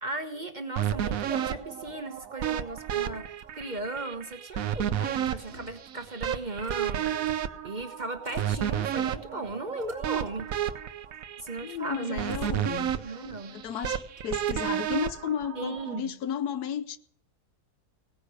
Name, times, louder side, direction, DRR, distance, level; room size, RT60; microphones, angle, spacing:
voice 1, 0.0-7.1 7.6-10.5 11.4-12.2 13.0-13.6 15.6-16.1, right 2 dB, 30° right, 1.1 m, -37 dB
sound 1, 0.8-16.0, right 10 dB, 65° right, 1.1 m, -32 dB
Motor vehicle (road), 2.4-4.0 4.3-4.4 4.7-7.4 8.1-9.1 9.5-11.3 11.9-13.3 13.8-15.3, left 2 dB, 50° left, 4.7 m, -55 dB
voice 2, 11.6-12.9 13.5-17.0, left 9 dB, 80° left, 1.3 m, -33 dB
18.0 x 10.0 x 6.3 m
omnidirectional pair, 1.7 m